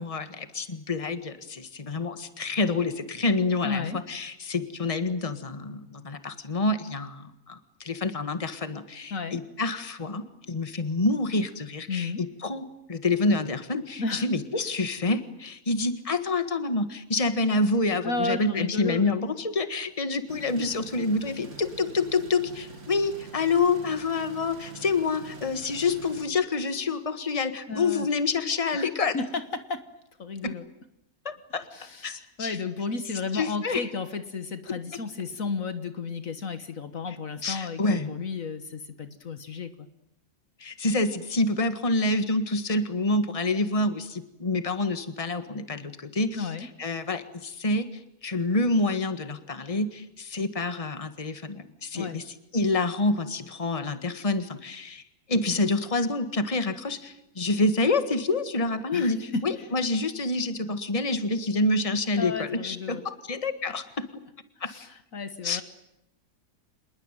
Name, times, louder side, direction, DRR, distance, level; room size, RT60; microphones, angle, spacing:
voice 1, 0.0-29.1 31.2-31.6 32.0-32.6 33.3-33.8 37.4-38.1 40.6-46.4 46.8-52.2 52.5-55.0 55.3-64.0 64.6-64.7 65.4-65.6, left 3 dB, 25° left, 10 dB, 1.7 m, -27 dB
voice 2, 3.6-4.0 9.1-9.4 11.9-12.2 14.0-14.3 18.0-19.1 27.7-28.1 28.7-29.9 30.2-30.6 31.7-39.9 46.3-46.7 51.9-52.2 58.9-59.7 62.2-63.1 64.7-65.6, left 4 dB, 60° left, 10 dB, 1.8 m, -33 dB
sound 1, 20.3-26.2, right 4 dB, 50° right, 2.6 m, -45 dB
27.0 x 20.5 x 9.1 m, 0.85 s
omnidirectional pair, 1.6 m